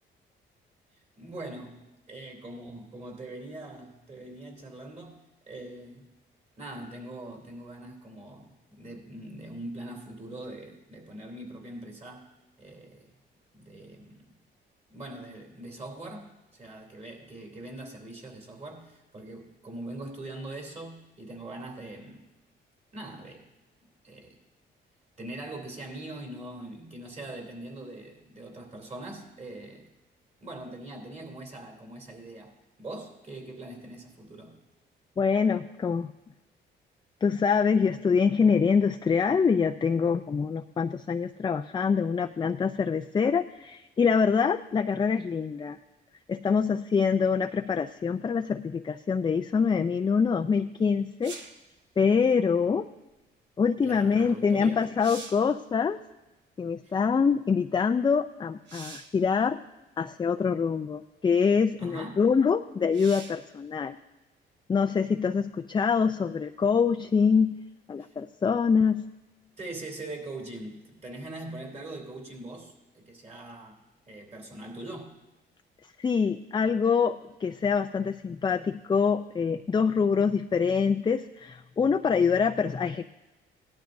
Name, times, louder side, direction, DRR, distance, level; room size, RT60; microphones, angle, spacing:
voice 1, 1.2-5.2 5.5-6.1 6.6-12.3 12.6-13.1 13.5-14.2 14.9-22.3 22.9-23.5 24.0-24.4 25.2-29.9 30.4-34.6 53.8-54.9 56.8-57.0 61.8-62.2 68.0-68.1 69.6-73.8 74.1-75.2, right 2 dB, 35° right, 0 dB, 3.1 m, -42 dB
voice 2, 35.2-36.1 37.2-45.8 46.3-51.3 52.0-52.9 53.6-56.0 56.6-59.6 60.0-64.0 64.7-67.6 67.9-69.1 76.0-83.0, left 6 dB, 25° left, 8 dB, 0.4 m, -25 dB
sound 1, 51.2-51.7 54.3-54.4 54.8-55.5 58.7-59.2 60.2-60.3 62.9-63.5 67.1-67.2, right 4 dB, 65° right, 1.2 m, -44 dB
17.5 x 12.0 x 2.6 m, 1.1 s
cardioid pair, 90°, 20 cm